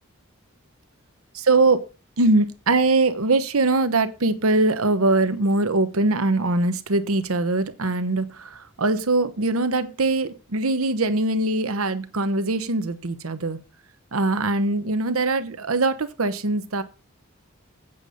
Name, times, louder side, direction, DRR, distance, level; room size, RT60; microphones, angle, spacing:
voice 1, 1.3-1.8 2.2-13.6 14.1-16.8, right 2 dB, 85° right, 11 dB, 1.0 m, -22 dB
8.2 x 6.8 x 5.1 m, 0.33 s
head